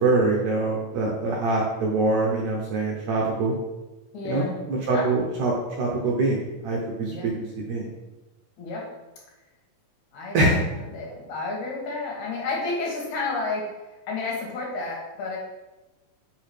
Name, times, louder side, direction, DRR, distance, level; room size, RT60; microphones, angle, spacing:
voice 1, 0.0-3.5 4.2-7.9 10.3-10.6, right 2 dB, 70° right, -2 dB, 1.8 m, -24 dB
voice 2, 4.1-4.5 4.9-5.1 7.0-7.3 8.6-8.8 10.1-13.7 14.1-15.4, left 3 dB, 70° left, -2 dB, 2.5 m, -31 dB
5.2 x 4.7 x 4.4 m, 1.1 s
omnidirectional pair, 4.0 m